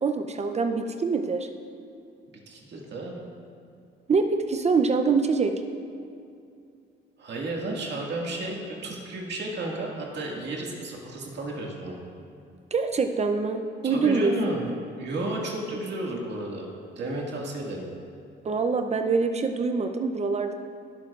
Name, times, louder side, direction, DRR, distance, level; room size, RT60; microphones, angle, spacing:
voice 1, 0.0-1.5 4.1-5.5 12.7-14.6 18.4-20.5, right 4 dB, 35° right, 6 dB, 0.6 m, -25 dB
voice 2, 2.5-3.2 7.2-12.0 13.8-14.6 15.0-16.7 17.0-17.8, right 2 dB, 60° right, -2 dB, 2.0 m, -33 dB
19.0 x 6.8 x 2.5 m, 2.5 s
cardioid pair, 90°, 20 cm